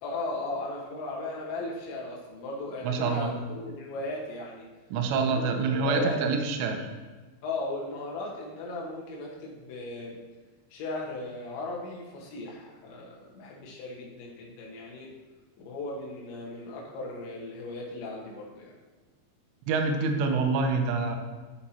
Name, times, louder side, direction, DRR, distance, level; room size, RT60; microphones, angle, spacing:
voice 1, 0.0-4.7 5.2-6.2 7.4-10.2 10.7-15.1 15.6-18.7, left 2 dB, 90° left, -3 dB, 4.0 m, -36 dB
voice 2, 2.8-3.3 4.9-6.9 19.7-21.2, right 4 dB, 80° right, 4 dB, 3.1 m, -26 dB
12.0 x 5.8 x 4.4 m, 1.3 s
omnidirectional pair, 5.0 m